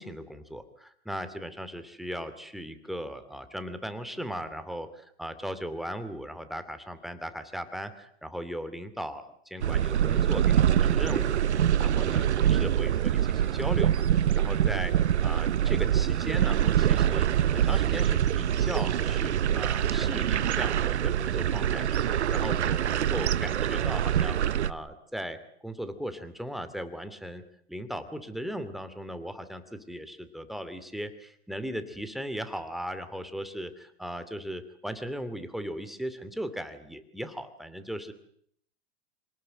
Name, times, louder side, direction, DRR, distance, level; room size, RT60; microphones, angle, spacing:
voice 1, 0.0-14.9 15.2-17.3 17.5-27.4 27.7-38.1, equal, ahead, 9 dB, 2.6 m, -38 dB
sound 1, 9.6-24.7, right 10 dB, 90° right, 1.0 m, -25 dB
26.5 x 18.5 x 7.8 m, 0.65 s
hypercardioid pair, 115°, 33 cm